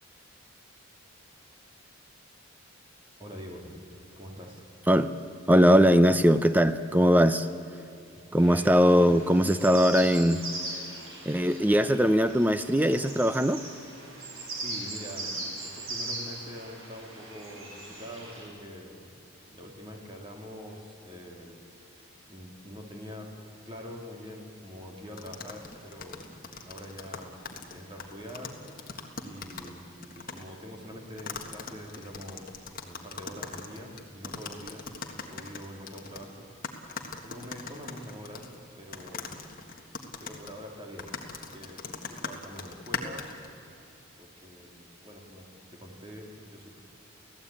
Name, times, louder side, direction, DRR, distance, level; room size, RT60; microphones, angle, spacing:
voice 1, 3.2-3.7 4.2-4.6 8.3-8.7 14.3-19.1 19.5-21.6 21.8-23.3 23.6-27.4 27.7-32.5 32.8-34.9 35.3-36.5 37.2-38.5 38.8-39.4 40.2-43.2 44.2-46.8, equal, 25° right, 3.3 m, -45 dB
voice 2, 5.5-7.5 8.3-10.4 11.3-13.6, equal, 10° right, 0.6 m, -21 dB
sound 1, 8.4-18.4, right 2 dB, 70° right, 7.2 m, -39 dB
sound 2, 25.2-29.8 30.0-30.4 31.2-36.3 36.6-38.6 38.9-43.5, left 5 dB, 40° left, 1.6 m, -40 dB
30.0 x 16.0 x 8.8 m
head